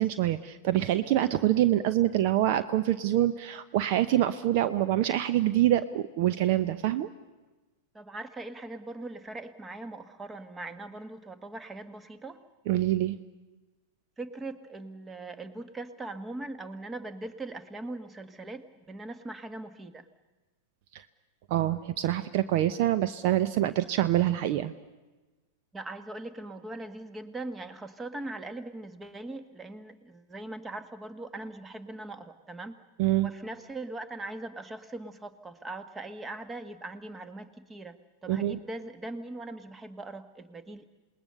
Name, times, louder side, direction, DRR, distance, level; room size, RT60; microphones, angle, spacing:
voice 1, 0.0-7.1 12.7-13.2 20.9-21.0 21.5-24.7 33.0-33.3 38.3-38.6, right 13 dB, 50° right, 13 dB, 0.8 m, -25 dB
voice 2, 7.9-12.5 14.2-20.1 25.7-32.8 33.2-40.8, right 2 dB, 15° right, 11 dB, 1.6 m, -40 dB
27.5 x 20.0 x 6.8 m, 1.2 s
figure-of-eight pair, 95°, 0 cm